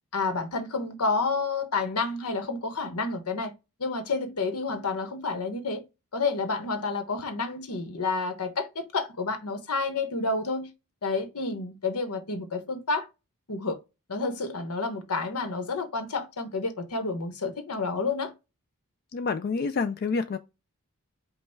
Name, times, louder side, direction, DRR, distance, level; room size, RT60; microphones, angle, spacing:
voice 1, 0.1-3.5 3.8-5.8 6.1-10.7 11.0-13.1 13.5-13.8 14.1-18.3, left 3 dB, 80° left, 1.0 m, -29 dB
voice 2, 19.1-20.4, left 4 dB, 45° left, 0.4 m, -28 dB
5.4 x 2.2 x 4.4 m
head